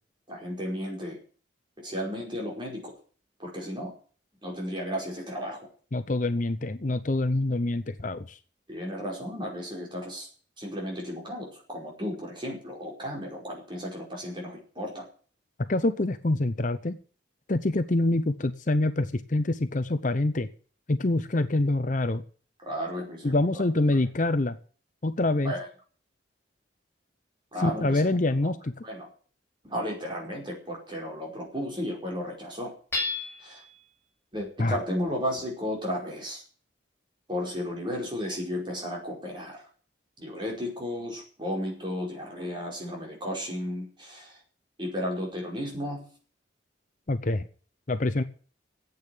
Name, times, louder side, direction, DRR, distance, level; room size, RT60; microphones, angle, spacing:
voice 1, 0.3-1.2 1.8-2.9 3.4-3.9 4.4-5.6 8.7-10.3 10.6-15.1 22.6-23.6 25.4-25.7 27.5-28.1 28.4-28.5 28.8-29.1 29.6-32.7 33.4-33.6 34.3-36.4 37.3-39.6 40.2-44.4 44.8-46.0, equal, 25° right, -1 dB, 5.1 m, -34 dB
voice 2, 5.9-8.4 15.7-17.0 17.5-20.5 20.9-22.2 23.2-24.6 25.0-25.5 27.6-28.7 34.6-34.8 47.1-47.5 47.9-48.2, left 2 dB, 45° left, 11 dB, 0.8 m, -25 dB
Hammer / Chink clink, 32.9-33.7, left 3 dB, 10° left, 6.8 m, -31 dB
10.5 x 8.6 x 10.0 m, 0.42 s
head